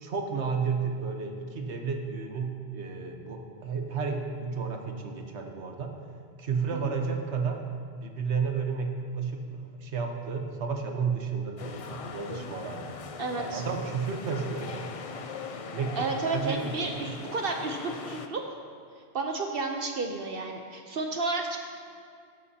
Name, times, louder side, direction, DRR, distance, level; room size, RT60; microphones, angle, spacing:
voice 1, 0.0-5.9 6.4-7.6 8.0-12.9 13.4-14.8 15.7-15.9 16.3-17.1, right 5 dB, 90° right, 3 dB, 1.3 m, -32 dB
sound 1, 11.6-18.3, left 5 dB, 50° left, 0.4 m, -41 dB
voice 2, 13.2-13.6 15.9-18.6 19.1-21.6, right 3 dB, 60° right, 3 dB, 0.9 m, -32 dB
13.0 x 11.0 x 2.8 m, 2.2 s
omnidirectional pair, 1.1 m